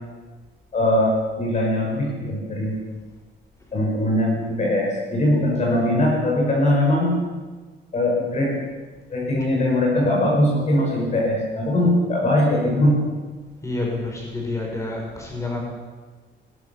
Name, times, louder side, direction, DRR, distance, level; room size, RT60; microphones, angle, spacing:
voice 1, 0.7-2.8 3.7-7.1 7.9-8.6 9.1-13.0, left 1 dB, 35° left, -2 dB, 5.9 m, -21 dB
voice 2, 13.6-15.6, left 2 dB, 15° left, -1 dB, 6.7 m, -28 dB
21.5 x 19.5 x 7.2 m, 1.4 s
cardioid pair, 165°, 19 cm